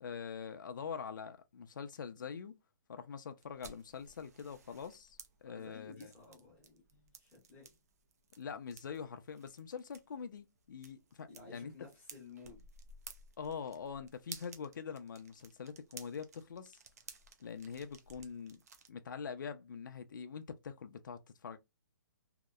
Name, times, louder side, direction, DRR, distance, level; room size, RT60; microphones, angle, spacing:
voice 1, 0.0-2.6 2.9-6.1 8.4-11.7 13.4-16.8 17.4-18.6 18.9-21.6, left 6 dB, 70° left, 0.4 m, -44 dB
sound 1, 3.4-18.9, right 5 dB, 50° right, 0.5 m, -56 dB
voice 2, 5.4-7.8 11.3-12.6, left 4 dB, 10° left, 0.9 m, -55 dB
2.8 x 2.0 x 2.2 m
hypercardioid pair, 180°, 11 cm